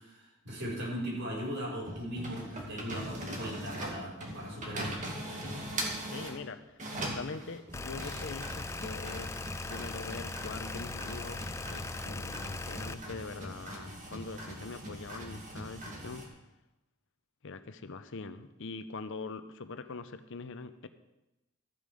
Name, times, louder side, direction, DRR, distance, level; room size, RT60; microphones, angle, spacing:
voice 1, 0.0-5.2, equal, 60° right, -4 dB, 5.4 m, -38 dB
sound 1, 1.8-6.4 6.8-16.3, right 1 dB, 35° right, 2.2 m, -41 dB
voice 2, 6.0-6.8 7.1-9.4 9.7-16.4 17.4-20.9, left 4 dB, 60° left, 11 dB, 0.7 m, -43 dB
sound 2, 7.7-12.9, left 3 dB, 15° left, 0.3 m, -40 dB
14.0 x 9.1 x 5.0 m, 0.99 s
head